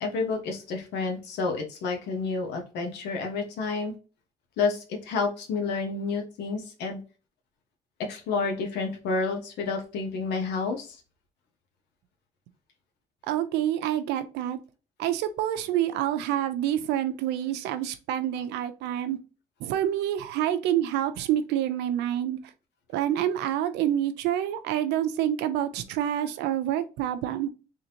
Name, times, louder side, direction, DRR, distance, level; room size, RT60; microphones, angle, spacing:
voice 1, 0.0-3.9 4.6-7.0 8.0-11.0, left 4 dB, 80° left, 1.3 m, -30 dB
voice 2, 13.3-14.6 15.0-19.2 19.6-22.4 22.9-27.5, right 11 dB, 90° right, 0.6 m, -27 dB
3.8 x 3.5 x 2.9 m
cardioid pair, 110°, 17 cm